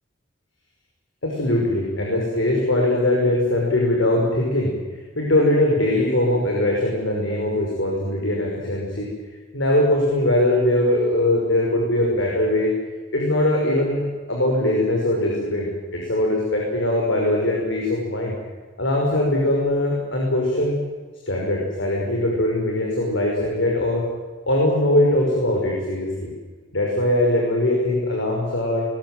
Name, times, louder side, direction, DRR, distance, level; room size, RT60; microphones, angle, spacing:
voice 1, 1.2-4.7 5.2-9.1 9.5-12.7 13.1-18.4 18.8-20.8 21.3-24.0 24.5-26.3 26.7-28.8, left 1 dB, 80° left, -2 dB, 5.6 m, -21 dB
21.5 x 20.5 x 9.3 m, 1.4 s
head